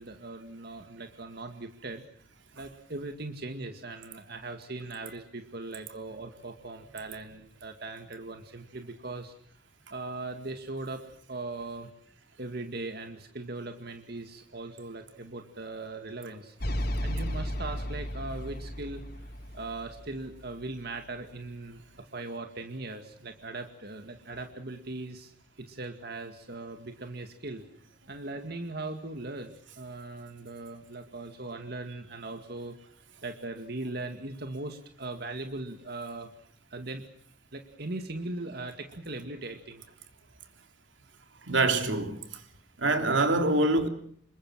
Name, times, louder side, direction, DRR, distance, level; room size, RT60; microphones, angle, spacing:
voice 1, 0.0-2.1 2.5-9.3 9.9-11.9 12.4-16.5 17.0-19.0 19.5-21.8 22.1-25.3 25.6-27.6 28.1-32.8 33.2-36.3 36.7-37.0 37.5-39.8, right 2 dB, 55° right, 2.2 m, -39 dB
sound 1, 16.6-20.9, equal, 55° left, 3.4 m, -34 dB
voice 2, 41.5-42.2 42.8-43.9, right 2 dB, 90° right, 3.2 m, -24 dB
27.5 x 22.5 x 6.4 m
head